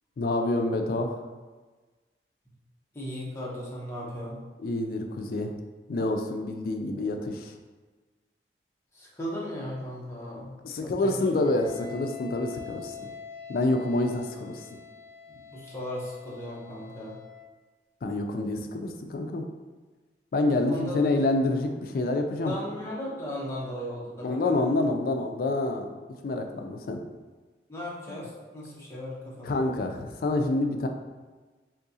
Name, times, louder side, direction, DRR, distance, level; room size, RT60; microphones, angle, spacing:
voice 1, 0.2-1.2 4.6-5.5 5.9-7.5 10.6-13.1 13.5-14.6 18.0-19.4 20.3-22.5 24.2-25.9 26.2-27.0 28.1-28.2 29.4-30.9, left 2 dB, 55° left, 4 dB, 0.3 m, -27 dB
voice 2, 2.9-4.4 8.9-11.2 15.3-17.2 20.5-21.0 22.4-24.7 27.7-29.7, equal, 15° left, -6 dB, 0.7 m, -37 dB
Wind instrument woodwind instrument, 11.3-17.5, left 8 dB, 20° right, 1.2 m, -45 dB
3.6 x 2.7 x 2.7 m, 1.3 s
head